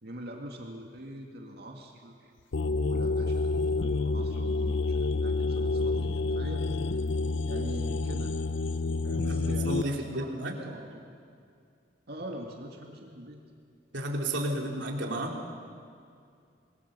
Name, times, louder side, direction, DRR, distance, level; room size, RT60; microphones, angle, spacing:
voice 1, 0.0-2.3 2.8-6.7 7.5-8.3 9.0-11.1 12.1-13.4, right 1 dB, 60° right, 1 dB, 2.3 m, -43 dB
sound 1, 2.5-9.8, left 3 dB, 80° left, 0.6 m, -28 dB
voice 2, 9.2-10.5 13.9-15.4, right 1 dB, 75° right, 0 dB, 3.3 m, -32 dB
26.5 x 22.0 x 6.9 m, 2.4 s
head